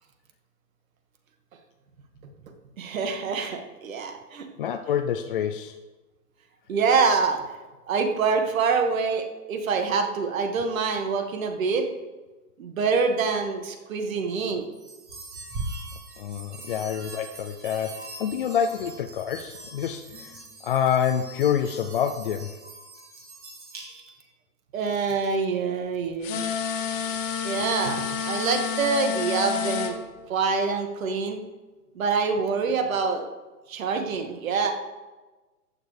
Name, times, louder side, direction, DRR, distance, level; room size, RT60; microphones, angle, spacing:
voice 1, 2.8-4.5 6.7-7.4 7.9-11.9 12.6-14.6 24.7-26.4 27.4-29.9 30.3-31.4 32.0-33.3 33.7-34.7, right 5 dB, 55° right, 5 dB, 2.0 m, -25 dB
voice 2, 4.6-5.8 16.2-22.6, left 8 dB, 35° left, 6 dB, 0.5 m, -27 dB
sound 1, 14.7-24.3, right 2 dB, 20° right, 2.1 m, -41 dB
sound 2, 26.2-29.9, left 7 dB, 50° left, 1.8 m, -29 dB
14.5 x 9.3 x 3.4 m, 1.2 s
hypercardioid pair, 140°, 47 cm